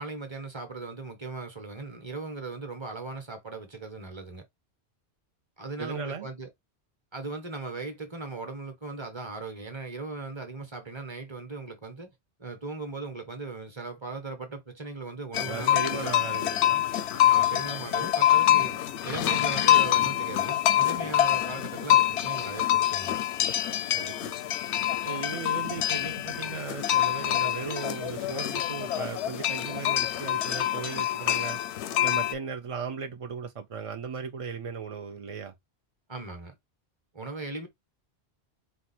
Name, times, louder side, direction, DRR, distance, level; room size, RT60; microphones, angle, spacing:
voice 1, 0.0-4.4 5.6-6.5 7.1-12.1 12.4-16.1 17.2-23.2 36.1-36.5 37.1-37.7, right 3 dB, 25° right, 1.0 m, -38 dB
voice 2, 5.8-6.3 15.5-16.8 23.9-24.3 25.0-31.6 32.0-35.5, right 5 dB, 50° right, 0.4 m, -37 dB
sound 1, 15.3-32.3, left 12 dB, 90° left, 0.9 m, -26 dB
4.3 x 2.4 x 4.2 m
omnidirectional pair, 1.1 m